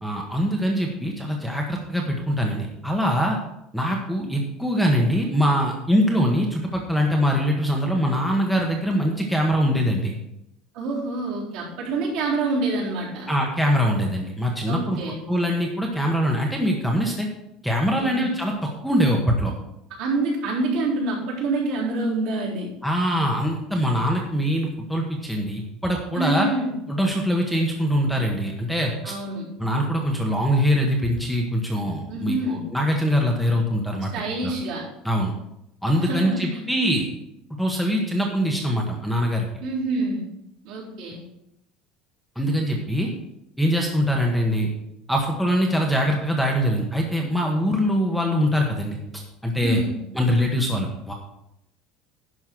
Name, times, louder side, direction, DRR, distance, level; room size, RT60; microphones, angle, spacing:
voice 1, 0.0-3.4 3.7-10.1 13.3-15.0 15.3-17.3 17.6-19.5 22.8-26.5 26.9-29.1 29.6-34.1 34.4-34.5 35.0-35.3 35.8-37.1 37.6-39.5 42.4-43.1 43.6-44.7 45.1-49.0 49.4-49.8 50.1-51.1, equal, ahead, -1 dB, 1.0 m, -23 dB
voice 2, 10.7-13.3 14.7-15.2 18.0-18.3 20.0-22.7 26.1-26.7 29.0-29.5 32.1-32.6 34.1-34.9 36.0-36.6 39.6-40.2 40.6-41.2 49.6-50.0, right 2 dB, 60° right, -4 dB, 3.9 m, -27 dB
11.0 x 5.3 x 6.0 m, 0.83 s
cardioid pair, 170°, 0 cm